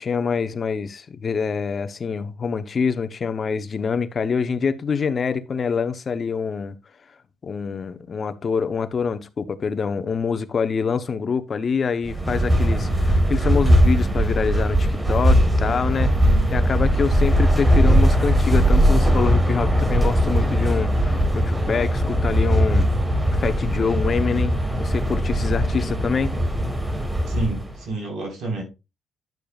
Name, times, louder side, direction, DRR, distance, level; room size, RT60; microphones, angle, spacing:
voice 1, 0.0-6.8 7.4-16.1 16.5-22.9 23.3-26.3, left 5 dB, 45° left, 0.8 m, -25 dB
sound 1, 12.1-27.8, equal, 15° right, 1.4 m, -19 dB
voice 2, 27.3-28.6, right 3 dB, 70° right, 4.3 m, -29 dB
10.5 x 6.7 x 2.4 m
cardioid pair, 90°, 0 cm